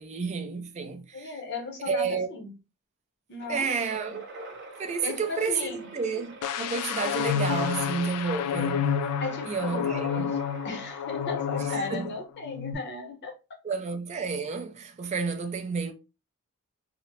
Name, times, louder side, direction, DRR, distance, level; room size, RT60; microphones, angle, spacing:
voice 1, 0.0-1.4 1.9-2.3 3.5-8.9 9.4-10.3 11.7-12.1 13.6-15.9, right 5 dB, 30° right, 0.3 m, -31 dB
voice 2, 1.1-2.5 3.3-3.7 4.1-4.2 5.0-5.9 9.2-10.4 10.6-13.3, left 3 dB, 50° left, 0.8 m, -36 dB
sound 1, 3.4-12.2, right 3 dB, 50° right, 0.7 m, -47 dB
sound 2, 6.4-12.1 12.4-12.7, left 7 dB, 90° left, 0.3 m, -29 dB
2.8 x 2.0 x 3.0 m
head